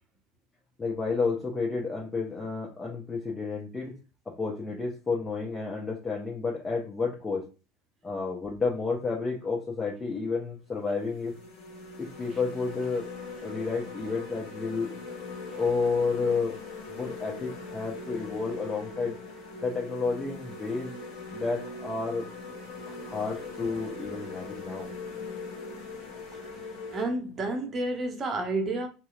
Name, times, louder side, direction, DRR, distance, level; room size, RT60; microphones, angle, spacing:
voice 1, 0.8-3.9 4.3-7.4 8.0-11.3 12.0-13.1 13.4-14.9 15.5-16.6 17.0-19.2 19.6-21.0 21.3-22.3 22.9-24.9, left 4 dB, 20° left, 0.7 m, -31 dB
sound 1, 10.1-10.3 10.9-27.0, left 3 dB, 60° left, 0.8 m, -41 dB
voice 2, 26.9-28.9, right 2 dB, 35° right, 0.7 m, -30 dB
2.7 x 2.1 x 2.4 m
hypercardioid pair, 80°, 0 cm